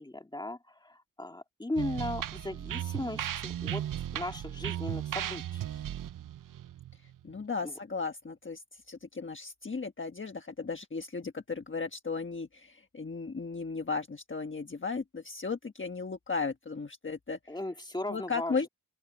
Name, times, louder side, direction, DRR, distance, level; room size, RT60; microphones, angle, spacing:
voice 1, 0.0-3.8 4.1-5.6 7.6-7.7 17.5-18.7, left 1 dB, 10° left, 2.1 m, -37 dB
sound 1, 1.7-7.4, right 11 dB, 65° right, 0.5 m, -36 dB
voice 2, 7.2-17.6 18.1-18.7, left 4 dB, 35° left, 1.3 m, -36 dB
open air
wide cardioid pair, 85°, 35 cm